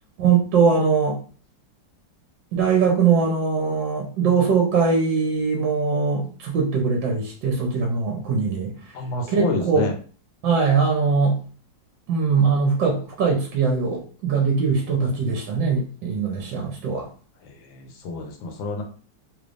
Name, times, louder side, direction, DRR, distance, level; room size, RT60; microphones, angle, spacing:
voice 1, 0.2-1.2 2.5-8.7 9.3-9.9 10.4-11.4 12.1-17.1, right 5 dB, 70° right, -1 dB, 1.4 m, -21 dB
voice 2, 8.9-9.9 17.8-18.8, left 2 dB, 80° left, 3 dB, 1.5 m, -28 dB
3.5 x 3.2 x 2.5 m, 0.40 s
omnidirectional pair, 2.1 m